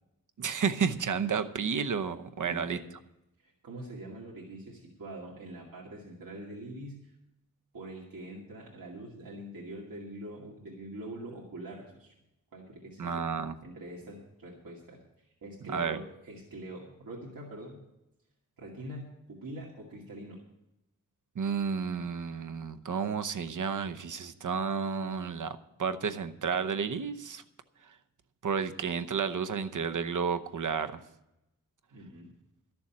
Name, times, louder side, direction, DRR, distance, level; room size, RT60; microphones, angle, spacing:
voice 1, 0.4-2.8 13.0-13.6 15.6-16.0 21.4-25.5 25.8-27.4 28.4-31.0, right 6 dB, 65° right, 9 dB, 0.9 m, -31 dB
voice 2, 2.4-2.9 3.4-7.1 7.7-12.1 12.5-13.2 13.6-17.8 18.6-20.4 31.9-32.3, right 1 dB, 80° right, -4 dB, 2.3 m, -44 dB
13.0 x 7.0 x 8.5 m, 0.88 s
wide cardioid pair, 110°, 34 cm